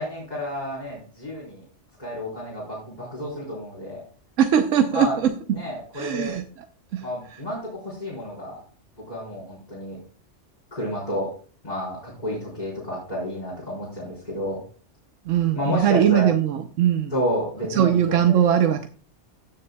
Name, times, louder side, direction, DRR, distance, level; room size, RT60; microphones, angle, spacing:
voice 1, 0.0-1.6 2.0-4.0 4.9-5.2 5.5-6.4 7.0-8.6 9.1-10.0 10.7-11.3 11.6-14.6 15.5-16.3 17.1-18.2, equal, 35° left, -7 dB, 4.3 m, -30 dB
voice 2, 4.4-5.3 5.9-6.6 6.9-7.4 15.2-17.1 17.7-18.9, right 9 dB, 80° right, 7 dB, 1.1 m, -21 dB
16.5 x 6.7 x 2.3 m, 0.40 s
omnidirectional pair, 1.3 m